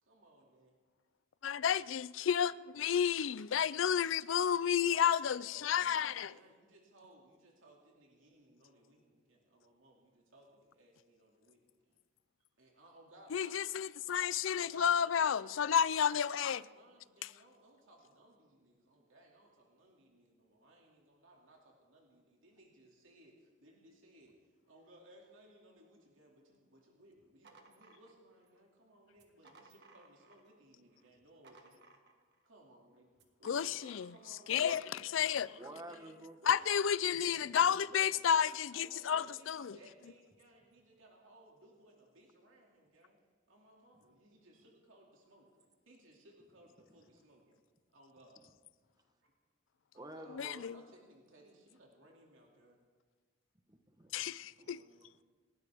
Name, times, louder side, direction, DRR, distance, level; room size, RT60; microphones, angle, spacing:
voice 1, 0.0-0.8 2.8-3.0 4.6-5.1 5.5-12.0 12.6-13.6 14.5-24.3 24.7-31.9 32.4-33.1 33.4-36.1 36.4-36.7 37.2-38.0 38.7-43.2 43.5-45.5 45.9-47.6 47.9-48.4 49.2-49.3 49.9-52.8 54.6-55.0, right 1 dB, 85° right, 2.5 m, -61 dB
voice 2, 1.4-6.3 13.3-16.6 17.2-17.3 33.4-34.1 34.5-34.8 35.1-35.5 36.5-39.8 50.3-50.8 54.1-54.8, left 8 dB, 80° left, 0.4 m, -31 dB
sound 1, 27.1-28.6 29.1-30.6 30.9-32.5 33.1-34.5, right 3 dB, 55° right, 1.6 m, -62 dB
voice 3, 35.6-36.4 46.9-47.0 49.9-50.6 53.7-54.7 55.0-55.2, right 1 dB, 20° right, 1.2 m, -50 dB
28.0 x 12.5 x 3.6 m
head